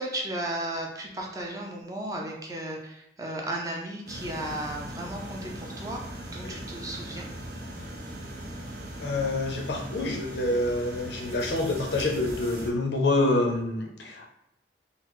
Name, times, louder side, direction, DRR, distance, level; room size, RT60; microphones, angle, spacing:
voice 1, 0.0-6.0 6.3-7.3, right 1 dB, 20° right, -1 dB, 0.5 m, -34 dB
sound 1, 4.1-12.7, right 1 dB, 60° right, 0.7 m, -39 dB
voice 2, 9.0-14.3, left 2 dB, 80° left, 2 dB, 0.6 m, -27 dB
3.8 x 2.0 x 3.0 m, 0.85 s
head